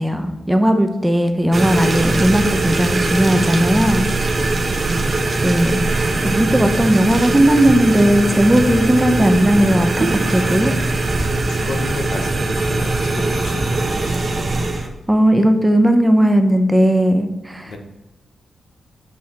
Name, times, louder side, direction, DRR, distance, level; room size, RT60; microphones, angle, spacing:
voice 1, 0.0-4.1 5.4-5.9 6.2-10.7 15.1-17.8, equal, 10° right, 7 dB, 0.8 m, -16 dB
sound 1, 1.5-14.9, right 2 dB, 35° right, 1.1 m, -21 dB
voice 2, 1.8-2.2 4.6-5.0 8.9-9.2 11.3-14.2 14.6-14.7 17.6-17.8, left 2 dB, 75° left, 4 dB, 1.3 m, -32 dB
7.7 x 5.5 x 4.2 m, 1.1 s
wide cardioid pair, 100°, 0 cm